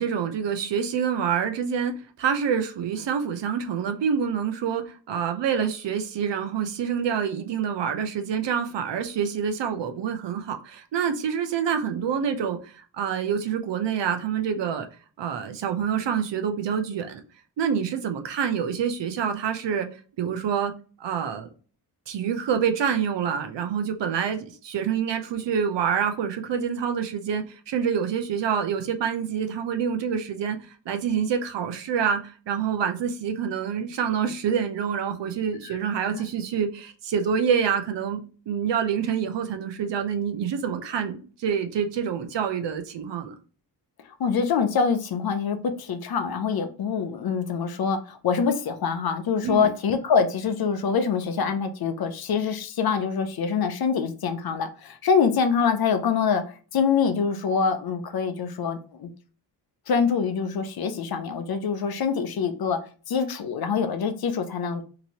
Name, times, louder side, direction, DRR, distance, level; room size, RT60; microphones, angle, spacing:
voice 1, 0.0-1.9 2.2-14.9 15.2-17.2 17.6-19.9 20.2-20.7 21.0-21.5 22.1-43.3 49.4-49.7, right 7 dB, 65° right, 0.7 m, -27 dB
voice 2, 44.2-56.4 56.7-59.1 59.9-62.8 63.1-64.8, left 6 dB, 55° left, 0.6 m, -25 dB
3.0 x 2.6 x 2.9 m
cardioid pair, 60°, 46 cm